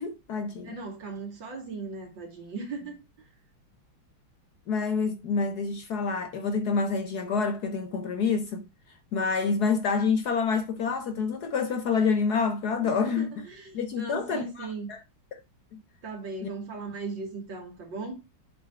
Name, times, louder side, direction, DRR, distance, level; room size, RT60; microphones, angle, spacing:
voice 1, 0.0-0.7 4.7-8.7 9.1-13.4 13.7-15.0 15.3-15.4 15.7-15.8 16.4-16.5, left 5 dB, 60° left, 1.2 m, -27 dB
voice 2, 0.6-3.0 12.8-14.9 16.0-18.2, right 3 dB, 65° right, 3.0 m, -38 dB
7.6 x 4.4 x 4.5 m
omnidirectional pair, 2.2 m